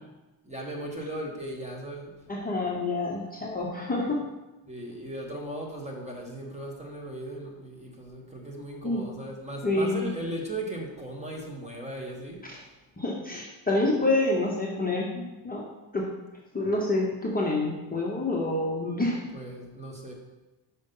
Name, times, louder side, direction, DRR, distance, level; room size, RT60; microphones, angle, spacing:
voice 1, 0.5-2.1 4.7-12.4 19.3-20.1, right 1 dB, 15° right, -1 dB, 1.2 m, -37 dB
voice 2, 2.3-4.3 8.8-9.0 9.6-10.1 12.4-12.6 13.0-15.6 15.9-16.1 16.5-19.2, left 2 dB, 20° left, -3 dB, 0.8 m, -27 dB
5.6 x 5.1 x 5.3 m, 1.1 s
cardioid pair, 140°, 49 cm